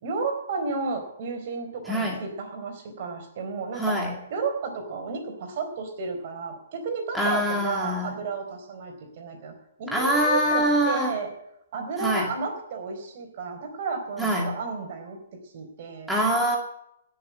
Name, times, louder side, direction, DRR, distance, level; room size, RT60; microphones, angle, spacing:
voice 1, 0.0-4.0 4.3-9.5 9.8-11.3 11.7-15.2 15.4-16.1, right 4 dB, 50° right, 5 dB, 4.1 m, -32 dB
voice 2, 3.8-4.2 7.1-8.1 9.9-11.1 12.0-12.3 14.2-14.5 16.1-16.6, equal, ahead, -2 dB, 2.2 m, -24 dB
16.5 x 7.2 x 9.7 m, 0.80 s
hypercardioid pair, 140°, 0 cm